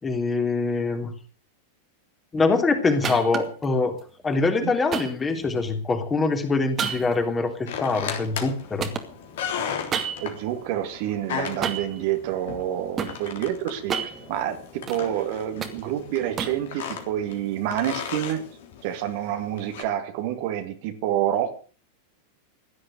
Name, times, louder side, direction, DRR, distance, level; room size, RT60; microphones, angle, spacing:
voice 1, 0.0-1.1 2.3-3.9 4.2-8.9, left 3 dB, 15° left, 5 dB, 3.3 m, -24 dB
sound 1, 3.0-3.7 4.9-5.9 6.8-8.5 8.8-10.4 11.6-12.0 12.6-13.2 13.7-15.0 15.4-16.7, right 7 dB, 25° right, 2.4 m, -31 dB
sound 2, 7.7-19.8, left 7 dB, 55° left, 3.5 m, -36 dB
voice 2, 10.2-18.4 18.8-21.6, right 11 dB, 50° right, 7 dB, 2.3 m, -28 dB
16.5 x 11.0 x 6.6 m, 0.39 s
figure-of-eight pair, 90°, 0 cm